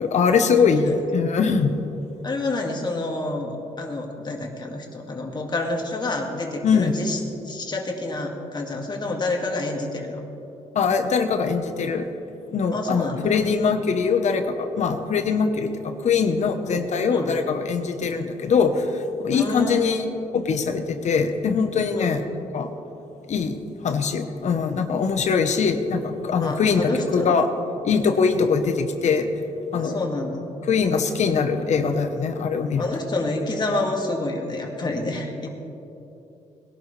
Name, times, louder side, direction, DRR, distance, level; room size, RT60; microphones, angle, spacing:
voice 1, 0.0-1.7 6.6-7.0 10.7-12.1 12.5-20.0 20.3-22.2 22.5-22.7 23.3-27.5 27.8-29.3 29.7-30.0 30.7-32.9, left 5 dB, 60° left, 7 dB, 1.0 m, -22 dB
voice 2, 0.5-1.0 2.2-10.2 12.7-13.4 16.6-16.8 17.1-17.3 19.3-20.0 22.0-22.2 26.4-27.4 29.7-30.5 32.8-35.5, left 2 dB, 30° left, 1 dB, 2.2 m, -28 dB
21.0 x 12.0 x 3.3 m, 3.0 s
cardioid pair, 95°, 14 cm